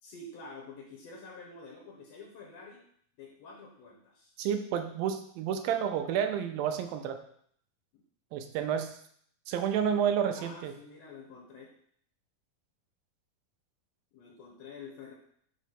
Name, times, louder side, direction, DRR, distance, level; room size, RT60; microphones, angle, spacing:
voice 1, 0.0-2.8 3.2-4.3 7.9-8.0 10.3-11.7 14.1-15.1, left 3 dB, 75° left, -1 dB, 1.6 m, -48 dB
voice 2, 4.4-7.2 8.3-9.0 9.5-10.7, right 8 dB, 80° right, 7 dB, 2.3 m, -30 dB
6.1 x 3.1 x 5.7 m, 0.63 s
omnidirectional pair, 4.1 m